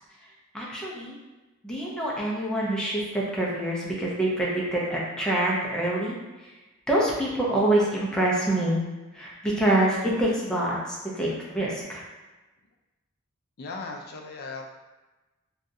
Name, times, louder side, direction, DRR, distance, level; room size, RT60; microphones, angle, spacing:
voice 1, 0.2-1.2 1.6-6.5 6.9-8.8 9.1-12.0, right 1 dB, 5° left, -5 dB, 0.6 m, -26 dB
voice 2, 13.6-14.7, left 3 dB, 45° left, 1 dB, 0.4 m, -37 dB
3.3 x 2.4 x 2.6 m, 1.1 s
head